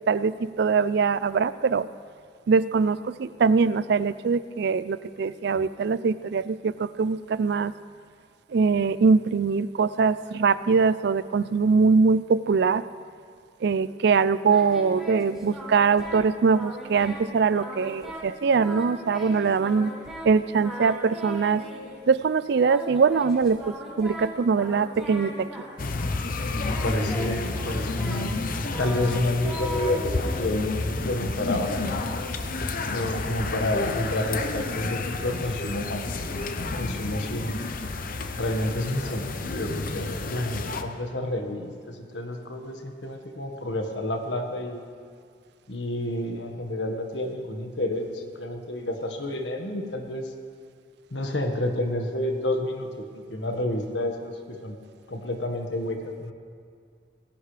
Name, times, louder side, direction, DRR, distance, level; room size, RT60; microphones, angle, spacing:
voice 1, 0.0-1.9 2.5-7.7 8.5-12.8 13.6-19.9 20.2-21.6 22.1-25.5, right 5 dB, 65° right, 16 dB, 0.4 m, -22 dB
Singing, 14.4-16.3 16.5-17.2 17.5-18.3 18.5-20.3 20.6-22.0 22.6-26.2 26.6-31.0, equal, ahead, 3.9 m, -39 dB
sound 1, 25.8-40.8, left 3 dB, 50° left, 0.8 m, -30 dB
voice 2, 26.6-28.4 28.8-32.0 32.9-36.5 36.8-37.6 38.3-44.8 45.7-50.3 51.1-54.8 55.1-56.3, left 1 dB, 75° left, 3 dB, 1.6 m, -29 dB
19.5 x 16.5 x 3.4 m, 2.2 s
head